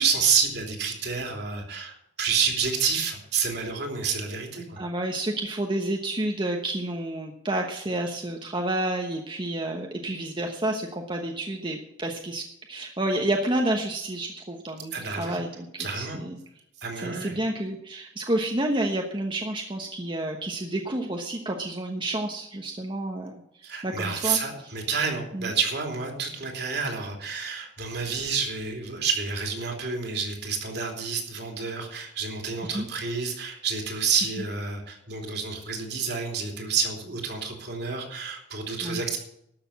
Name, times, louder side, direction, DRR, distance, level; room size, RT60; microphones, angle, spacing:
voice 1, 0.0-4.8 14.9-15.4 15.8-16.2 16.8-17.3 23.6-39.2, right 5 dB, 60° right, 2 dB, 3.1 m, -29 dB
voice 2, 4.8-15.7 15.9-16.4 17.0-23.4 23.8-24.4 25.3-25.5 32.7-32.9 38.8-39.0, right 1 dB, 25° right, 2 dB, 1.1 m, -29 dB
12.5 x 6.8 x 8.7 m, 0.76 s
head